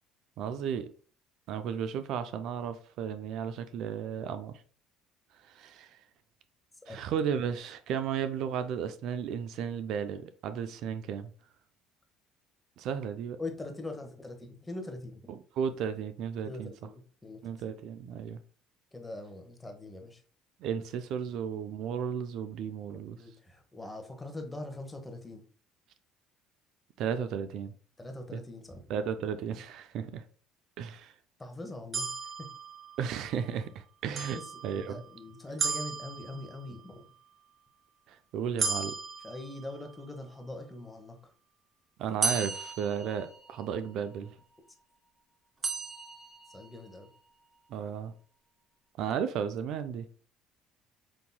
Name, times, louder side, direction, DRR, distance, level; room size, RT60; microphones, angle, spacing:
voice 1, 0.4-0.9 1.5-4.5 5.4-6.0 6.9-11.3 12.8-13.4 15.6-16.7 17.4-18.4 20.6-23.2 27.0-27.7 28.3-28.4 28.9-30.2 30.8-31.1 33.0-35.0 38.1-38.9 42.0-44.3 47.7-48.1 49.0-50.0, right 7 dB, 65° right, 0.3 m, -34 dB
voice 2, 13.4-15.3 16.4-17.6 18.9-20.2 23.2-25.4 28.0-28.8 31.4-32.1 32.4-32.5 34.3-37.1 39.2-41.3 46.5-47.1, left 2 dB, 15° left, 0.9 m, -42 dB
sound 1, 31.9-33.3 34.2-35.1 35.6-36.8 38.6-40.1 42.2-43.8 45.6-46.8, right 4 dB, 35° right, 0.8 m, -35 dB
5.3 x 2.8 x 2.2 m
supercardioid pair, 85°, 0 cm